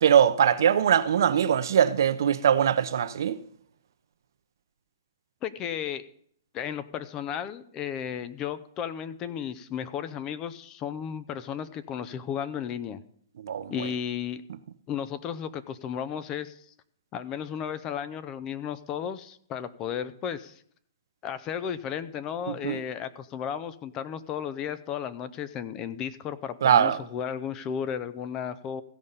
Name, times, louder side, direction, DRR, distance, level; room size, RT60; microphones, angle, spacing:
voice 1, 0.0-3.4 13.4-13.7 22.5-22.8 26.6-27.0, right 9 dB, 65° right, 0.7 m, -22 dB
voice 2, 5.4-6.1 6.5-13.0 13.7-14.4 14.9-16.6 17.1-20.6 21.2-28.8, left 8 dB, 25° left, 0.5 m, -34 dB
15.5 x 5.2 x 5.5 m
hypercardioid pair, 150°, 2 cm